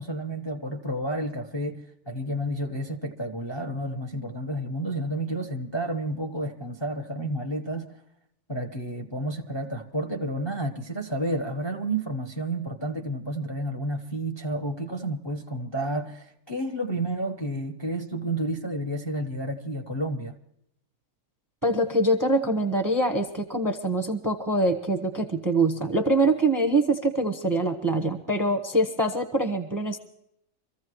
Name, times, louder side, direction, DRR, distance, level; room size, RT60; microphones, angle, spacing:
voice 1, 0.0-8.0 8.5-20.3, right 1 dB, 25° left, 0.7 m, -31 dB
voice 2, 21.6-30.0, right 2 dB, 15° right, 0.8 m, -24 dB
25.0 x 15.0 x 3.1 m
omnidirectional pair, 1.8 m